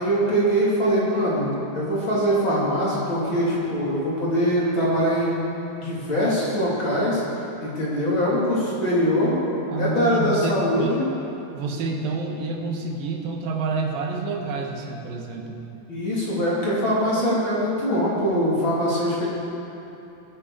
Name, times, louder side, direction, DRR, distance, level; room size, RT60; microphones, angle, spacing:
voice 1, 0.0-7.2 7.6-9.3 9.8-11.1 15.9-19.3, equal, 35° left, -7 dB, 3.3 m, -23 dB
voice 2, 9.7-11.0 11.5-15.6, right 3 dB, 75° right, 2 dB, 2.8 m, -28 dB
20.5 x 8.5 x 4.9 m, 2.9 s
omnidirectional pair, 4.4 m